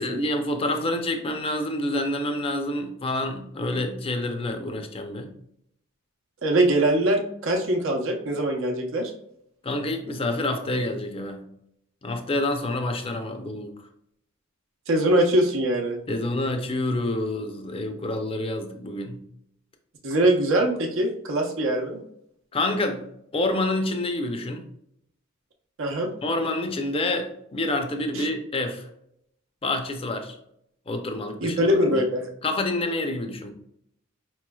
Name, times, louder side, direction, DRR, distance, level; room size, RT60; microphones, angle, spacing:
voice 1, 0.0-5.3 9.6-11.5 12.0-13.7 16.1-19.2 22.5-23.0 23.3-24.6 26.2-28.9 29.6-30.4 30.9-31.7 32.4-33.5, left 2 dB, 25° left, 6 dB, 0.5 m, -27 dB
voice 2, 6.4-9.1 14.9-16.0 20.0-22.0 25.8-26.1 28.1-28.2 31.4-32.3, right 1 dB, 65° right, 3 dB, 0.7 m, -22 dB
4.6 x 3.0 x 2.3 m, 0.74 s
head